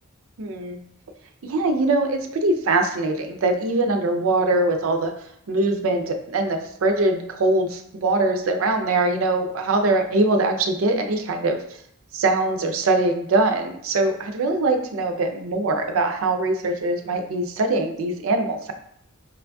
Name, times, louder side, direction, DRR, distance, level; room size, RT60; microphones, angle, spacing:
voice 1, 0.4-0.8 1.4-5.1 5.5-11.8 12.1-18.7, right 2 dB, 80° right, 5 dB, 0.5 m, -22 dB
4.7 x 2.6 x 2.3 m, 0.68 s
head